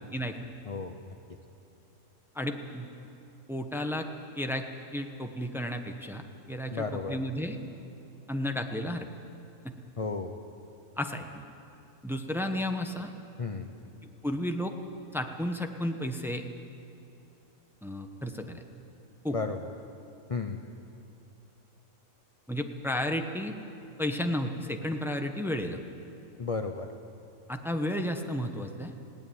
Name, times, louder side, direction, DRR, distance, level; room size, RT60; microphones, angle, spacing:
voice 1, 0.7-1.2 6.7-7.2 10.0-10.4 13.4-13.7 19.3-19.7 20.3-20.6 26.4-26.9, left 4 dB, 30° left, 6 dB, 0.7 m, -33 dB
voice 2, 2.3-2.9 3.5-4.1 4.4-4.6 4.9-6.2 6.5-7.6 8.3-9.1 9.6-9.7 11.0-11.4 12.0-13.1 14.2-14.7 15.1-16.5 17.8-18.6 19.2-19.3 22.5-23.5 24.0-25.8 27.5-28.9, left 1 dB, ahead, 5 dB, 1.0 m, -32 dB
19.5 x 17.0 x 9.5 m, 2.8 s
omnidirectional pair, 1.4 m